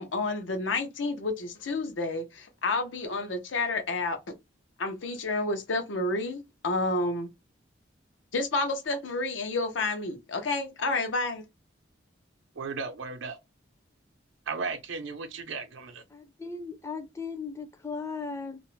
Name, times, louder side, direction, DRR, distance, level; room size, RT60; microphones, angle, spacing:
voice 1, 0.0-4.2 4.8-7.3 8.3-11.4, left 2 dB, 85° left, 0.6 m, -30 dB
voice 2, 12.6-13.4 14.5-16.0, right 4 dB, 80° right, 0.6 m, -35 dB
voice 3, 16.1-18.6, left 4 dB, 15° left, 0.4 m, -37 dB
2.5 x 2.0 x 3.0 m
head